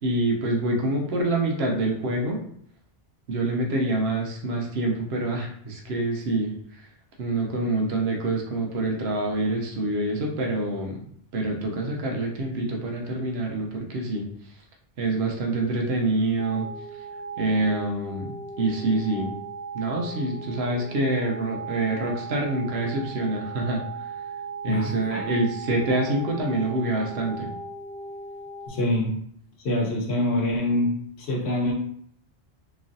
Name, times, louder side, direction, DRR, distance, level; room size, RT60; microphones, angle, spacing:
voice 1, 0.0-2.4 3.3-6.5 7.2-11.0 11.3-14.3 15.0-16.7 17.4-18.3 18.6-19.3 19.7-23.8 24.6-27.5, right 2 dB, 75° right, 0 dB, 0.9 m, -26 dB
sound 1, 16.4-28.7, right 4 dB, 15° left, 0.6 m, -37 dB
voice 2, 24.7-25.2 28.7-29.1 29.6-31.7, left 1 dB, 75° left, -1 dB, 1.0 m, -25 dB
3.0 x 2.4 x 2.5 m, 0.65 s
omnidirectional pair, 1.1 m